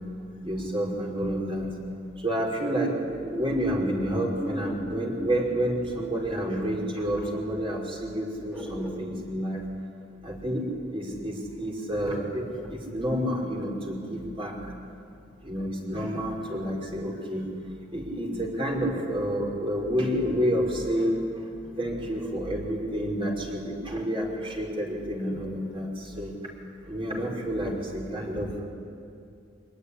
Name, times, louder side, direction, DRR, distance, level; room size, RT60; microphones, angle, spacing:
voice 1, 0.4-1.7 2.2-9.7 10.2-14.6 15.4-17.5 17.9-26.4 26.9-28.6, equal, 30° right, -1 dB, 5.3 m, -29 dB
sound 1, 3.3-6.4 8.5-9.0, equal, 10° right, 2.9 m, -38 dB
25.5 x 19.5 x 10.0 m, 2.6 s
head